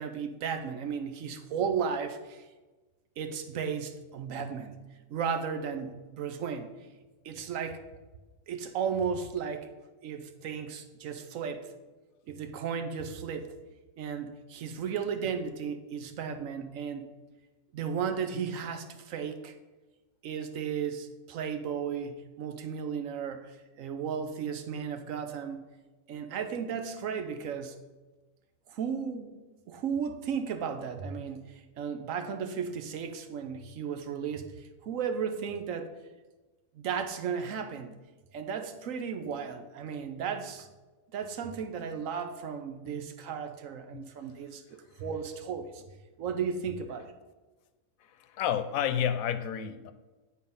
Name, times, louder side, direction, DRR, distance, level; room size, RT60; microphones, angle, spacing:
voice 1, 0.0-2.5 3.2-4.8 5.1-6.7 7.2-7.8 8.5-9.7 10.0-11.7 12.3-13.5 14.0-17.1 17.7-19.6 20.2-25.6 26.1-27.8 28.7-29.3 29.7-36.0 36.7-38.0 38.3-40.7 41.1-45.8 46.2-47.1, right 6 dB, 75° right, 8 dB, 1.1 m, -35 dB
voice 2, 48.0-49.9, left 9 dB, 80° left, 12 dB, 1.0 m, -31 dB
9.0 x 4.3 x 5.4 m, 1.2 s
omnidirectional pair, 1.4 m